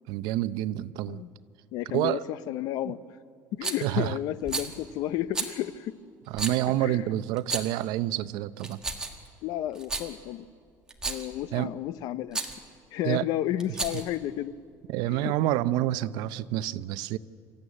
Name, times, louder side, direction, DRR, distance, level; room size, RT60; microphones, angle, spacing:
voice 1, 0.1-1.2 1.9-2.2 2.9-3.0 3.8-4.2 6.3-8.8 11.5-11.7 13.0-13.3 14.9-17.2, right 14 dB, 70° right, 15 dB, 0.6 m, -28 dB
voice 2, 1.7-3.0 3.5-5.9 6.8-7.0 9.4-10.5 11.1-12.4 12.9-14.5 15.1-15.3, left 12 dB, 60° left, 16 dB, 0.7 m, -32 dB
Rattle, 3.6-3.9 4.4-4.7 5.3-5.5 6.3-6.6 7.4-7.8 8.6-9.3 9.7-10.1 10.9-11.3 12.3-12.6 13.6-14.1, right 3 dB, 10° right, 1.6 m, -32 dB
25.5 x 14.5 x 9.8 m, 2.2 s
cardioid pair, 170°, 7 cm